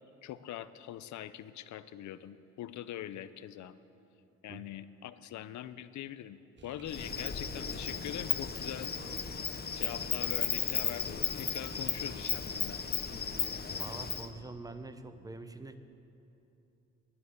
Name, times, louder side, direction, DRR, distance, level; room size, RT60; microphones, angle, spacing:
voice 1, 0.2-3.7 4.4-6.4 6.6-9.2 9.7-12.8, left 11 dB, 70° left, 13 dB, 0.6 m, -43 dB
sound 1, 6.6-12.6, right 5 dB, 40° right, 1.3 m, -54 dB
Insect, 6.9-14.3, left 6 dB, 35° left, 0.9 m, -35 dB
voice 2, 13.8-15.8, right 2 dB, 10° right, 10 dB, 0.8 m, -45 dB
10.5 x 9.6 x 9.7 m, 2.9 s
cardioid pair, 90°, 30 cm